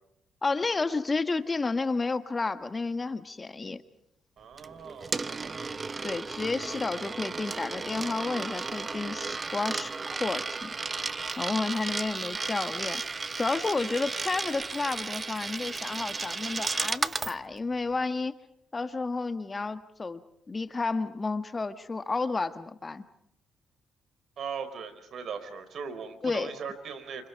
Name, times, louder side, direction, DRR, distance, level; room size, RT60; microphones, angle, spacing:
voice 1, 0.4-3.8 6.0-10.7 11.4-13.0 13.4-18.3 18.7-20.2 20.5-23.0 26.2-26.5, left 3 dB, 25° left, 10 dB, 1.5 m, -31 dB
voice 2, 4.4-5.5 24.4-27.3, right 6 dB, 60° right, 10 dB, 4.3 m, -39 dB
Coin (dropping), 4.6-17.4, right 4 dB, 30° right, 0.9 m, -34 dB
30.0 x 28.0 x 4.7 m, 0.75 s
cardioid pair, 90°, 0 cm